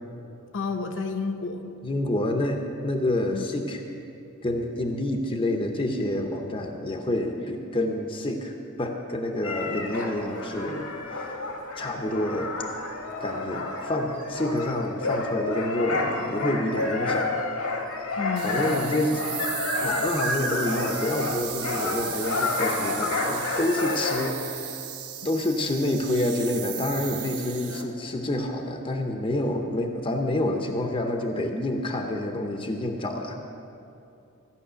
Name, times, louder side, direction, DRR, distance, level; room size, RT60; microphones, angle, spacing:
voice 1, 0.5-1.7 3.3-3.4 18.2-18.7 27.7-27.9, left 4 dB, 55° left, 4 dB, 0.9 m, -31 dB
voice 2, 1.8-3.8 4.4-11.3 11.8-12.5 13.2-17.4 18.4-19.3 19.8-24.8 25.2-33.4, left 1 dB, 25° left, 4 dB, 0.7 m, -28 dB
sound 1, 9.4-24.3, left 3 dB, 80° left, 1.6 m, -30 dB
sound 2, 18.4-27.8, right 11 dB, 90° right, 1.0 m, -36 dB
14.0 x 5.9 x 8.9 m, 2.7 s
head